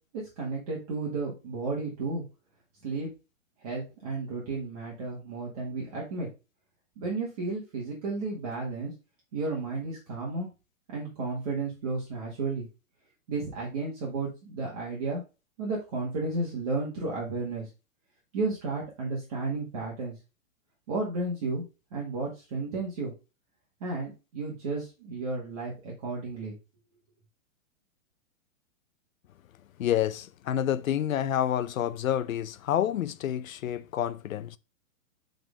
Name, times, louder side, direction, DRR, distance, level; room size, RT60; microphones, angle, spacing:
voice 1, 0.1-2.2 2.8-3.1 3.6-6.3 7.0-8.9 9.3-10.5 10.9-12.7 13.3-15.2 15.6-17.7 18.3-20.1 20.9-21.6 21.9-23.1 23.8-26.5, right 3 dB, 30° right, 1.7 m, -33 dB
voice 2, 29.8-34.6, left 10 dB, 80° left, 0.7 m, -28 dB
6.1 x 4.0 x 5.0 m
hypercardioid pair, 175°, 40 cm